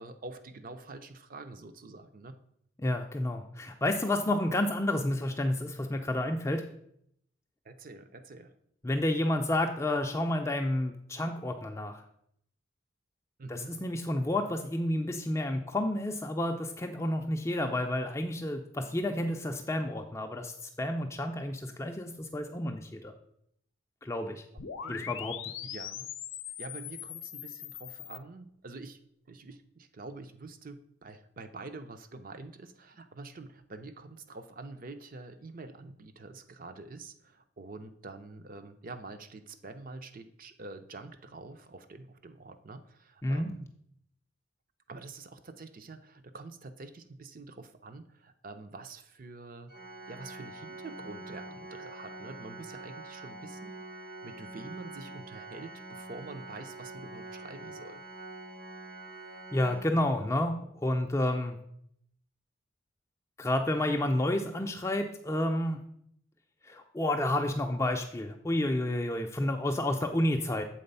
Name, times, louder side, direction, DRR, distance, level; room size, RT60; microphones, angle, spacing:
voice 1, 0.0-2.4 7.6-8.5 13.4-13.8 24.8-25.1 25.6-26.1 26.6-29.0 29.3-43.7 44.9-49.8 50.1-53.8 54.2-58.0, right 3 dB, 45° right, 10 dB, 0.6 m, -46 dB
voice 2, 2.8-6.6 8.8-12.0 13.5-23.1 24.0-24.4 24.9-25.4 43.2-43.5 59.5-61.6 63.4-65.8 66.6-70.6, left 1 dB, 15° left, 3 dB, 0.4 m, -30 dB
sound 1, 24.6-28.2, left 10 dB, 75° left, 0.6 m, -41 dB
Organ, 49.7-60.5, right 2 dB, 65° right, 1.2 m, -45 dB
7.7 x 4.0 x 5.4 m, 0.70 s
head